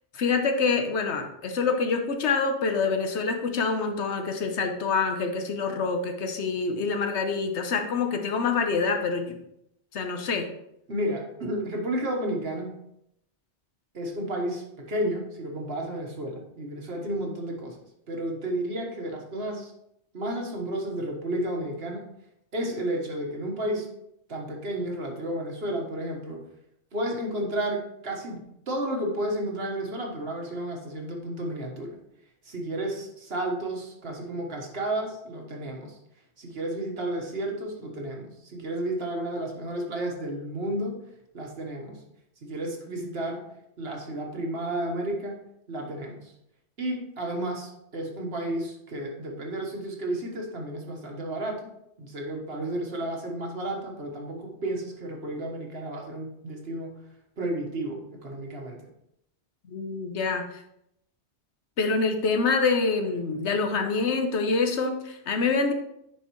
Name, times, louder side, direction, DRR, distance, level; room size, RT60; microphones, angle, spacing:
voice 1, 0.1-9.4 9.9-10.5 59.7-60.5 61.8-65.7, left 4 dB, 90° left, 5 dB, 1.2 m, -26 dB
voice 2, 10.9-12.7 13.9-17.8 18.1-19.7 20.1-22.1 22.5-23.9 24.3-26.4 26.9-32.0 32.4-36.0 36.4-41.0 41.3-42.0 42.4-43.4 43.8-45.4 45.7-46.3 46.8-51.6 52.0-57.0 57.4-58.8, right 1 dB, 65° right, 1 dB, 1.6 m, -32 dB
10.0 x 4.6 x 3.1 m, 0.79 s
omnidirectional pair, 1.1 m